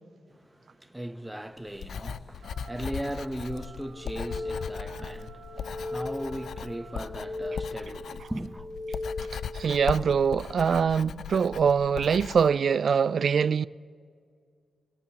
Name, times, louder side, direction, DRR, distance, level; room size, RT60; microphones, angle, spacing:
voice 1, 0.3-8.7, right 1 dB, 10° right, 0.7 m, -38 dB
Writing, 1.7-12.5, left 7 dB, 75° left, 0.4 m, -39 dB
Telephone, 2.4-9.3, right 6 dB, 90° right, 1.3 m, -53 dB
sound 1, 3.9-5.0 5.4-6.5 6.9-8.0 8.4-9.6, left 2 dB, 40° left, 5.4 m, -37 dB
voice 2, 9.3-13.7, right 6 dB, 65° right, 0.3 m, -24 dB
25.0 x 18.0 x 2.8 m
cardioid pair, 75°, 0 cm